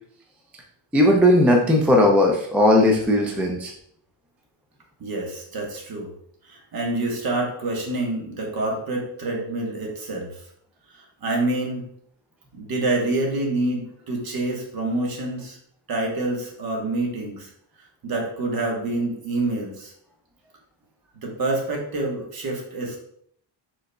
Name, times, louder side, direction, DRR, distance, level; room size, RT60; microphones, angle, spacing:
voice 1, 0.9-3.7, left 1 dB, 5° right, 0 dB, 0.3 m, -17 dB
voice 2, 5.0-6.1 6.5-10.3 10.9-11.8 12.5-15.6 15.9-17.5 18.0-19.9 21.2-23.0, right 2 dB, 50° right, 0 dB, 1.2 m, -27 dB
5.3 x 3.8 x 2.2 m, 0.66 s
cardioid pair, 160°, 45 cm